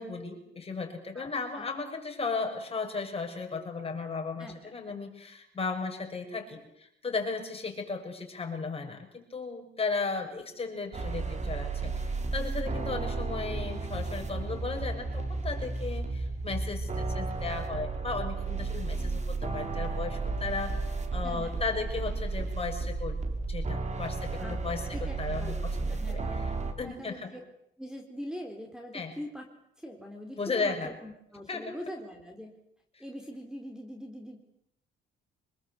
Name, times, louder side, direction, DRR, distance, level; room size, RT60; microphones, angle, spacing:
voice 1, 0.0-23.2 23.5-26.4 26.8-27.3 28.9-29.1 30.4-30.9 31.5-31.8, left 4 dB, 30° left, 3 dB, 7.0 m, -35 dB
voice 2, 4.4-4.9 21.2-21.6 24.4-24.6 24.9-26.4 26.8-27.4 27.8-29.5 29.8-32.5 33.0-34.4, equal, 5° right, 3 dB, 3.8 m, -43 dB
sound 1, 10.9-26.7, right 3 dB, 35° right, 3.7 m, -33 dB
25.5 x 21.0 x 8.3 m, 0.75 s
cardioid pair, 90°, 20 cm